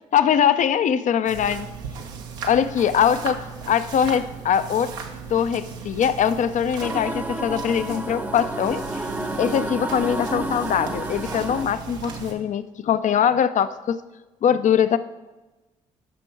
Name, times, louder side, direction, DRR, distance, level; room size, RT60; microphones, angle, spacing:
voice 1, 0.1-1.7 2.4-3.4 3.7-5.0 5.3-8.8 9.4-14.0 14.4-15.0, left 8 dB, 50° left, 14 dB, 0.5 m, -22 dB
plaster spread wallpaper glue, 1.3-12.3, right 5 dB, 85° right, 0.9 m, -37 dB
sound 1, 6.8-11.6, right 1 dB, 10° right, 0.8 m, -31 dB
9.9 x 6.0 x 4.7 m, 1.1 s
hypercardioid pair, 45°, 16 cm